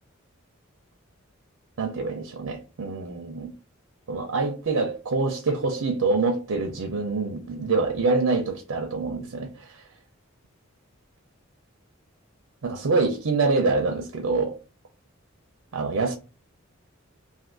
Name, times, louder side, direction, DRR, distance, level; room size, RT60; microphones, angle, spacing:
voice 1, 1.8-3.5 4.1-9.6 12.6-14.6 15.7-16.2, right 3 dB, 85° right, 0.5 m, -25 dB
2.5 x 2.5 x 3.7 m
head